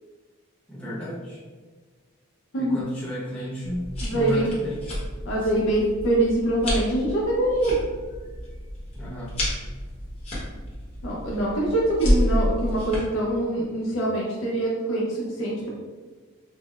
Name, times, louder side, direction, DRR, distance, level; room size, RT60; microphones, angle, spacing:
voice 1, 0.7-1.4 2.6-5.0 5.4-5.5 8.9-9.5, equal, 5° left, -8 dB, 0.9 m, -33 dB
sound 1, 3.6-13.0, left 1 dB, 30° left, 1.1 m, -30 dB
voice 2, 4.0-4.5 5.3-7.8 11.0-15.1 15.4-15.7, right 1 dB, 60° left, -4 dB, 0.7 m, -24 dB
5.5 x 2.0 x 2.4 m, 1.4 s
head